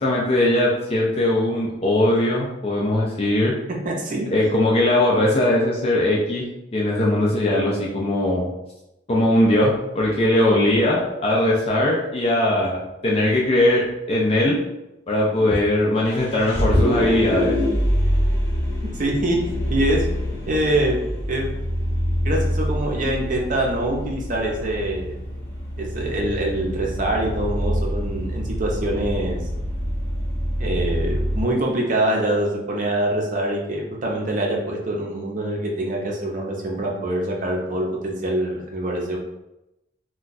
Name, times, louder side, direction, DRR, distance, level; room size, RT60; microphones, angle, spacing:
voice 1, 0.0-3.5 4.3-6.5 6.7-8.5 9.1-14.6 15.1-17.6, left 1 dB, 35° left, -4 dB, 0.4 m, -20 dB
voice 2, 3.7-4.3 18.9-19.4 19.7-20.1 20.5-21.6 22.2-25.1 25.8-29.5 30.6-39.2, right 1 dB, 45° right, -1 dB, 0.6 m, -24 dB
Vehicle, 16.0-31.4, equal, 85° left, 0.9 m, -25 dB
2.3 x 2.2 x 3.9 m, 0.92 s
head